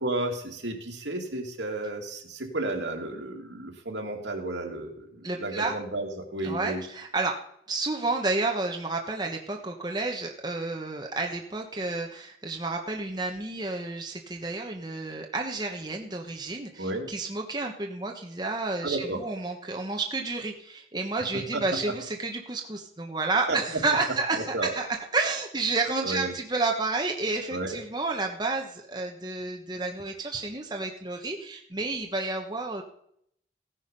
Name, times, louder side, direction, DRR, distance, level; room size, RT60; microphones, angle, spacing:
voice 1, 0.0-6.8 16.8-17.1 18.8-19.2 21.3-21.8 23.5-23.8 24.3-24.8 26.0-26.3 27.5-27.8, right 2 dB, 90° right, 1 dB, 2.7 m, -32 dB
voice 2, 5.2-5.7 6.4-7.4 7.7-24.9 25.1-32.8, right 3 dB, 25° right, 2 dB, 1.2 m, -30 dB
16.5 x 9.8 x 5.4 m, 0.71 s
head